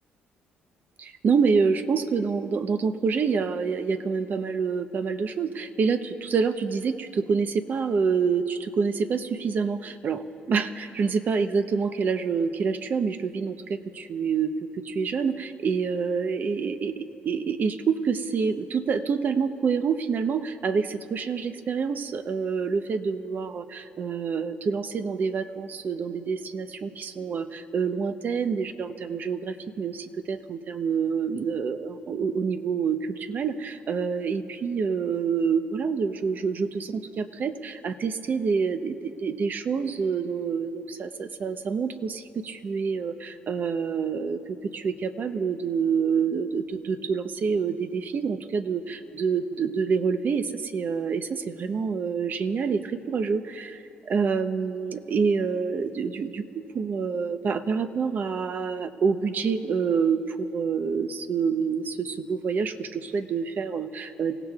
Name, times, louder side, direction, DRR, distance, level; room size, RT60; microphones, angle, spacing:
voice 1, 1.0-53.8 54.1-56.4 56.7-64.3, right 5 dB, 50° right, 9 dB, 0.8 m, -27 dB
28.0 x 16.0 x 2.4 m, 2.8 s
cardioid pair, 85°, 4 cm